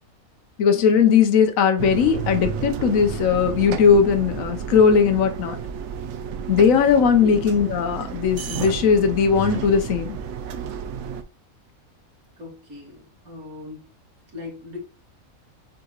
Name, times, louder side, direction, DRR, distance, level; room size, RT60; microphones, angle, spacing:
voice 1, 0.6-5.6 6.5-10.2, left 6 dB, 70° left, 1.2 m, -18 dB
sound 1, 1.8-11.2, right 7 dB, 65° right, 0.8 m, -31 dB
voice 2, 7.1-7.5 12.4-13.9 14.3-14.8, left 4 dB, 80° right, 2.3 m, -38 dB
7.4 x 3.0 x 2.4 m
omnidirectional pair, 1.5 m